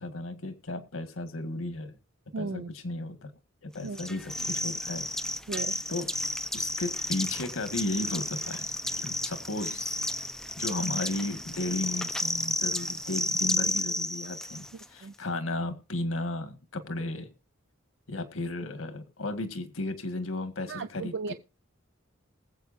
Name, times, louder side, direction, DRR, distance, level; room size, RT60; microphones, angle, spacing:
voice 1, 0.0-2.0 2.4-3.3 3.6-5.1 5.9-6.1 6.5-10.0 10.6-17.3 18.1-21.3, left 2 dB, 75° left, 1.8 m, -34 dB
voice 2, 2.3-2.7 3.8-4.0 5.5-5.7 15.0-15.1 20.7-21.3, right 4 dB, 60° right, 0.5 m, -35 dB
sound 1, 4.0-14.9, left 1 dB, 5° left, 0.6 m, -32 dB
20.5 x 8.0 x 2.6 m
head